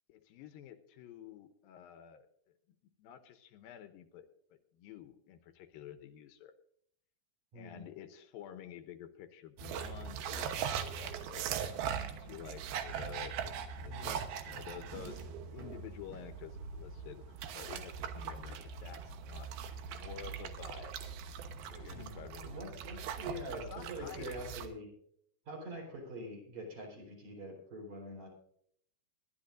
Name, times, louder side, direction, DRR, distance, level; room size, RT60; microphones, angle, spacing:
voice 1, 0.1-2.6 3.0-6.5 7.6-11.7 12.0-15.3 15.5-20.9 21.7-22.7 23.5-24.3, left 9 dB, 80° left, 9 dB, 2.5 m, -50 dB
voice 2, 7.5-7.8 13.8-14.2 21.9-24.9 25.5-28.3, right 1 dB, 50° right, 0 dB, 5.3 m, -45 dB
sound 1, 9.6-24.7, right 7 dB, 85° right, 3.0 m, -41 dB
21.0 x 12.5 x 2.6 m, 0.67 s
omnidirectional pair, 4.3 m